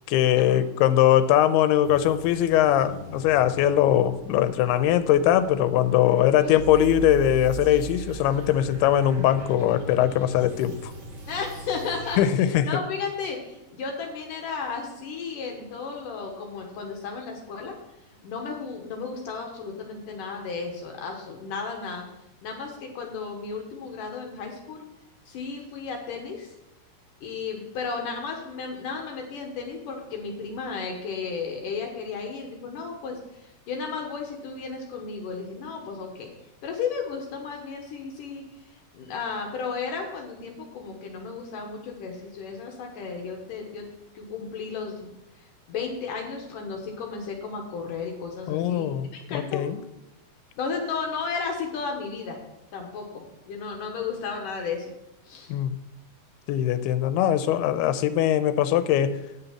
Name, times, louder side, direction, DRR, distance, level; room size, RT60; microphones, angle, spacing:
voice 1, 0.1-10.9 12.2-12.8 48.5-49.8 55.5-55.7 56.5-59.2, left 11 dB, 85° left, 12 dB, 2.6 m, -21 dB
sound 1, 1.8-12.2, right 4 dB, 55° right, 3.4 m, -39 dB
voice 2, 11.3-17.8 18.2-22.0 22.4-24.8 25.3-26.5 27.2-36.3 36.6-38.4 38.7-43.8 44.1-49.6 50.6-52.4 52.7-54.9 55.2-55.5, left 5 dB, 65° left, 2 dB, 2.5 m, -34 dB
9.3 x 6.8 x 5.8 m, 0.92 s
omnidirectional pair, 4.5 m